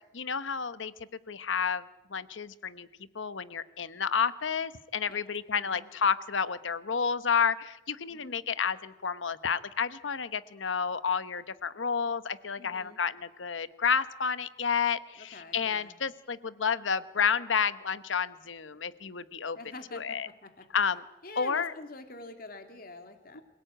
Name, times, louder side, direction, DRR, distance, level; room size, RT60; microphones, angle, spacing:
voice 1, 0.1-0.9 1.3-1.8 2.1-2.9 3.1-19.6 19.9-20.3 20.7-21.0 21.4-21.7 23.3-23.4, left 6 dB, 85° left, 15 dB, 1.0 m, -30 dB
voice 2, 12.6-13.0 15.2-16.0 19.5-20.7 21.2-23.4, left 2 dB, 50° left, 7 dB, 2.6 m, -46 dB
26.5 x 17.5 x 9.1 m, 1.0 s
head